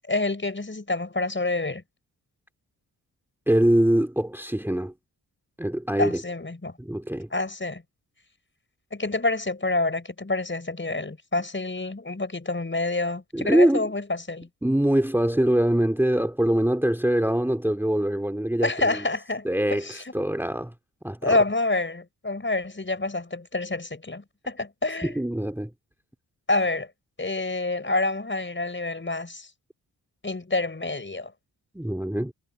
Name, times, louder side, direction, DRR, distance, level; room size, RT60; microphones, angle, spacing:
voice 1, 0.1-1.8 6.0-6.7 7.3-7.8 8.9-14.5 18.6-20.0 21.2-25.2 26.5-26.9 27.2-29.5 30.2-31.3, left 2 dB, 30° left, 5.9 m, -27 dB
voice 2, 3.5-4.9 5.6-6.2 6.8-7.3 13.3-13.9 14.6-19.0 19.4-20.7 21.0-21.4 25.0-25.7 31.7-32.3, right 1 dB, 5° right, 2.6 m, -23 dB
supercardioid pair, 45°, 41 cm